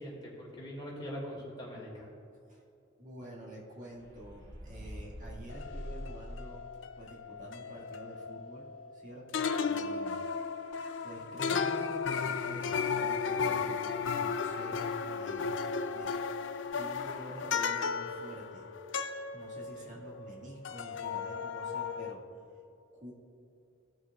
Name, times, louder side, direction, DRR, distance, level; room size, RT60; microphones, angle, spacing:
voice 1, 0.0-2.1 19.7-20.0, equal, 25° left, -4 dB, 2.1 m, -42 dB
voice 2, 3.0-6.7 7.0-10.2 10.7-10.8 11.0-14.8 15.1-15.5 15.9-16.1 16.7-18.8 19.3-22.4 22.9-23.1, right 1 dB, 40° right, -5 dB, 1.8 m, -48 dB
sound 1, 4.0-6.8, equal, 60° right, 1.8 m, -44 dB
sound 2, 5.5-9.0 9.3-20.4 20.6-22.1, left 5 dB, 75° left, 0.4 m, -35 dB
16.0 x 6.4 x 2.4 m, 2.7 s
head